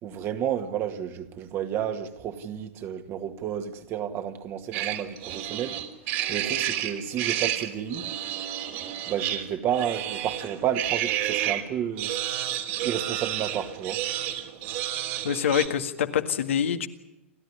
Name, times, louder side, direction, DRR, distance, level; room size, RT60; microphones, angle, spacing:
voice 1, 0.0-5.8 6.3-8.1 9.1-12.2 12.8-14.0, right 9 dB, 35° right, 2.1 m, -31 dB
sound 1, 4.7-11.6 12.0-15.7, right 12 dB, 50° right, 3.2 m, -30 dB
voice 2, 15.2-16.9, left 8 dB, 70° left, 1.8 m, -25 dB
29.0 x 13.5 x 9.9 m
hypercardioid pair, 105°, 7 cm